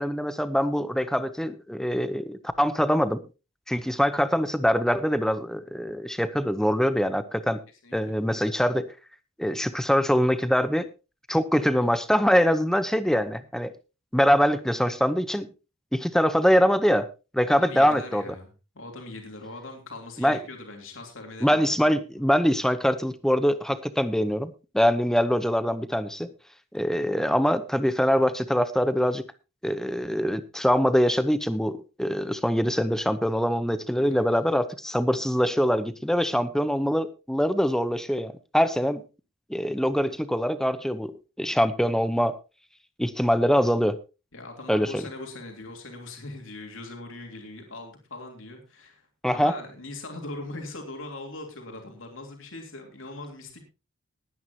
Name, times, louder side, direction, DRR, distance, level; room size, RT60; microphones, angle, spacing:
voice 1, 0.0-3.2 3.7-7.6 7.9-8.9 9.4-10.9 11.3-13.7 14.1-15.5 15.9-17.1 17.3-18.2 20.2-20.4 21.4-26.3 26.7-29.2 29.6-39.0 39.5-42.4 43.0-44.0 44.7-45.0 49.2-49.5, equal, ahead, 13 dB, 0.8 m, -23 dB
voice 2, 7.8-8.2 17.4-18.5 18.7-21.8 22.2-22.3 33.9-34.3 44.3-49.0 49.3-53.6, left 2 dB, 65° left, 2 dB, 3.2 m, -40 dB
20.0 x 9.5 x 2.9 m, 0.30 s
head